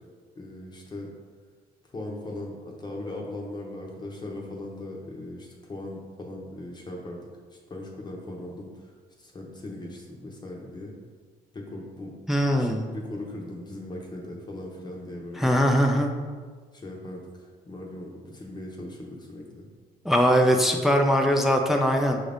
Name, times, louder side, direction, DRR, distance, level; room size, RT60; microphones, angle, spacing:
voice 1, 0.4-1.1 1.9-7.2 7.7-8.9 9.2-10.9 11.5-12.1 12.5-15.5 16.7-19.6, left 1 dB, 25° left, -1 dB, 0.8 m, -39 dB
voice 2, 12.3-12.9 15.4-16.1 20.0-22.2, equal, ahead, 2 dB, 0.4 m, -21 dB
6.0 x 2.6 x 3.4 m, 1.5 s
cardioid pair, 110°, 17 cm